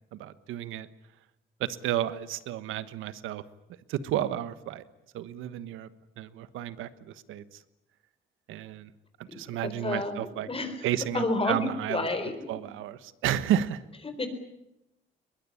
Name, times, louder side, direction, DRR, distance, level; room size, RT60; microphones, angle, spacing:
voice 1, 0.1-0.9 1.6-3.4 3.9-4.8 5.1-5.9 6.2-7.6 8.5-8.9 9.2-10.5 10.8-12.1 12.5-13.8, right 11 dB, 90° right, 14 dB, 1.3 m, -32 dB
voice 2, 9.8-10.9 11.1-12.3 14.2-14.3, left 2 dB, 30° left, 8 dB, 4.2 m, -30 dB
22.0 x 21.0 x 10.0 m, 0.90 s
cardioid pair, 90°, 20 cm